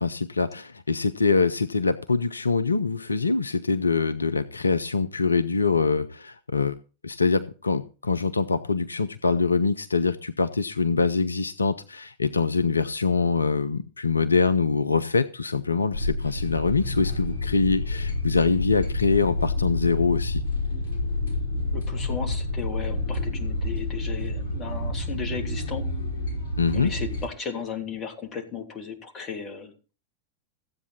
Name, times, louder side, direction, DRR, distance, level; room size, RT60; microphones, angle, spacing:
voice 1, 0.0-6.7 7.0-20.4 26.6-26.9, left 4 dB, 80° left, 12 dB, 0.6 m, -24 dB
sound 1, 15.9-27.3, left 2 dB, 60° left, 5.3 m, -29 dB
voice 2, 21.7-25.8 26.7-29.7, left 6 dB, 30° left, 3 dB, 2.9 m, -35 dB
15.0 x 8.4 x 4.2 m, 0.35 s
figure-of-eight pair, 90°, 0 cm